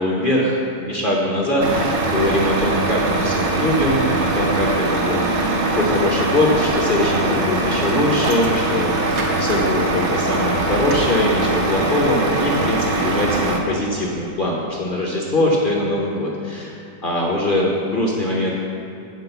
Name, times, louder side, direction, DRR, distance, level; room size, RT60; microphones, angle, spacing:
voice 1, 0.0-16.8 17.0-18.5, left 1 dB, 40° left, -2 dB, 0.8 m, -22 dB
Truck, 1.6-13.6, right 2 dB, 55° right, 0.8 m, -21 dB
7.8 x 5.2 x 6.8 m, 2.7 s
omnidirectional pair, 1.8 m